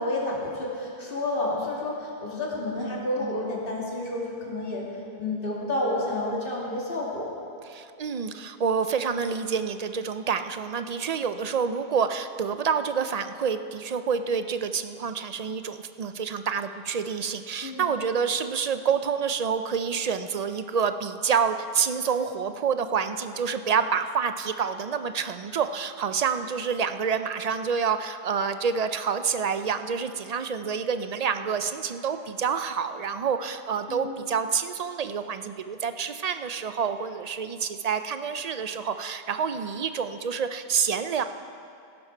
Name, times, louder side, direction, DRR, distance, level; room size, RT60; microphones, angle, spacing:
voice 1, 0.0-4.9 5.2-7.3 17.6-17.8 33.9-34.1, left 2 dB, 60° left, -4 dB, 2.5 m, -30 dB
voice 2, 2.8-3.4 7.7-41.2, right 6 dB, 50° right, 10 dB, 0.5 m, -28 dB
16.0 x 11.5 x 4.5 m, 2.4 s
omnidirectional pair, 1.0 m